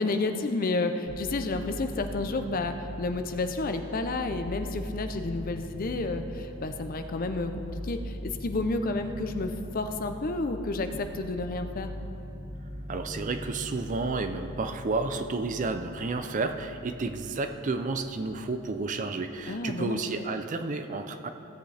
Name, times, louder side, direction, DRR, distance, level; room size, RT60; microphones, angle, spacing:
voice 1, 0.0-11.9 19.5-20.0, left 3 dB, 40° left, 8 dB, 0.5 m, -31 dB
sound 1, 1.1-18.5 18.8-19.6, equal, 15° right, 2.4 m, -41 dB
voice 2, 12.9-21.3, right 3 dB, 35° right, 8 dB, 0.4 m, -31 dB
16.5 x 7.9 x 3.4 m, 2.8 s
head